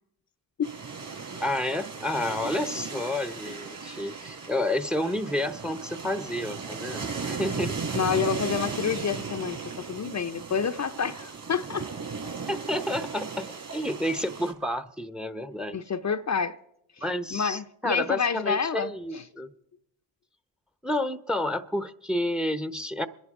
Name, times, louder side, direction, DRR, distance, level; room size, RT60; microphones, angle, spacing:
sound 1, 0.6-14.5, right 5 dB, 50° right, 4.1 m, -36 dB
voice 1, 1.4-7.9 12.5-15.8 17.0-19.5 20.8-23.1, left 1 dB, ahead, 0.9 m, -30 dB
voice 2, 7.9-11.9 15.7-16.5 17.3-19.2, left 6 dB, 40° left, 0.7 m, -28 dB
27.0 x 11.0 x 3.7 m
supercardioid pair, 45°, 44 cm